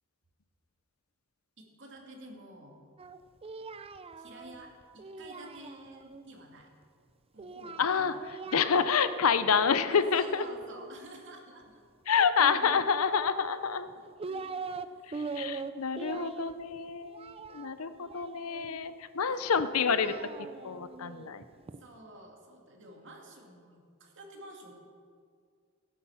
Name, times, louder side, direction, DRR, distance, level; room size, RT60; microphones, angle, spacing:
voice 1, 1.6-2.8 4.2-6.7 7.3-8.3 9.9-11.8 14.2-15.1 19.3-19.4 21.8-24.7, right 1 dB, 60° right, 1 dB, 2.2 m, -51 dB
Singing, 3.0-6.2 7.4-9.4 9.7-10.9 12.3-13.3 13.9-14.9 15.1-18.8 19.6-21.8, right 4 dB, 25° right, 0.4 m, -42 dB
voice 2, 7.8-8.1 8.5-10.4 12.1-13.9 15.1-20.1 20.6-21.4, left 6 dB, 80° left, 12 dB, 0.6 m, -28 dB
16.5 x 8.4 x 5.7 m, 2.1 s
head